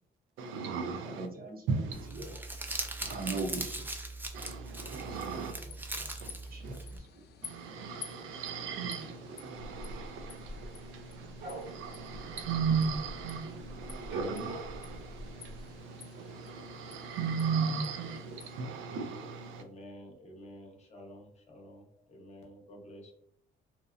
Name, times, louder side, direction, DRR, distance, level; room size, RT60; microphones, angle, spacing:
voice 1, 0.4-1.3 1.7-2.1 3.0-3.4 4.3-5.5 6.2-6.3 6.6-6.8 7.4-19.6, right 5 dB, 90° right, 0.4 m, -36 dB
voice 2, 1.0-2.3 3.1-3.9 4.9-5.5 6.0-7.2 8.3-8.4, right 3 dB, 50° right, 0.7 m, -41 dB
Crumpling crinkling, 1.9-7.0, right 2 dB, 10° right, 0.4 m, -40 dB
sound 1, 5.4-18.6, left 6 dB, 55° left, 0.5 m, -53 dB
sound 2, 9.7-13.3 13.6-15.6, right 1 dB, 75° right, 1.1 m, -44 dB
voice 3, 19.6-23.1, equal, 35° left, 0.8 m, -50 dB
2.7 x 2.0 x 2.4 m
cardioid pair, 90°, 20 cm